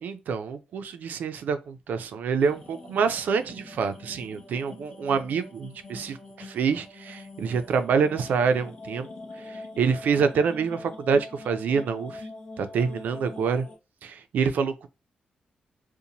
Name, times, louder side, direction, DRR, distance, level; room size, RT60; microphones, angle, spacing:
voice 1, 0.0-9.1 9.5-12.2 12.6-13.6 14.0-14.9, right 6 dB, 80° right, 0.4 m, -26 dB
sound 1, 2.4-13.8, left 2 dB, 45° left, 0.8 m, -44 dB
2.6 x 2.1 x 2.8 m
cardioid pair, 120°, 3 cm